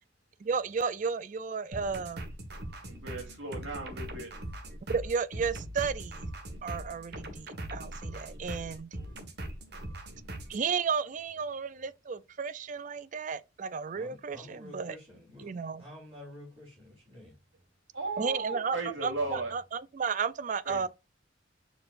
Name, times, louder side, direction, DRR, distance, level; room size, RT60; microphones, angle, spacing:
voice 1, 0.4-2.2 4.9-6.3 6.6-8.9 10.5-15.0 15.4-15.8 18.2-18.8 19.0-20.9, right 5 dB, 40° right, 0.4 m, -33 dB
sound 1, 1.7-10.6, right 1 dB, 60° right, 1.6 m, -41 dB
voice 2, 2.8-4.3 17.9-19.5 20.7-20.9, right 2 dB, 90° right, 2.6 m, -36 dB
voice 3, 13.9-17.3, left 1 dB, 25° right, 3.9 m, -50 dB
6.9 x 5.6 x 2.5 m
head